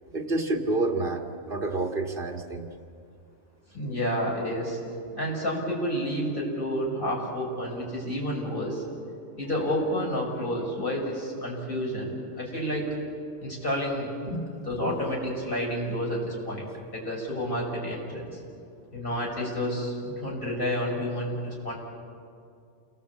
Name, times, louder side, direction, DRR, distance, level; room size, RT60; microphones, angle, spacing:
voice 1, 0.1-2.7 14.3-14.4 14.8-14.9, right 2 dB, 45° right, 2 dB, 2.1 m, -29 dB
voice 2, 3.7-4.8 5.1-8.8 9.4-12.9 13.4-14.1 14.6-16.7 16.9-18.3 18.9-21.8, equal, 45° left, -3 dB, 6.5 m, -30 dB
29.0 x 20.0 x 8.4 m, 2.4 s
omnidirectional pair, 1.3 m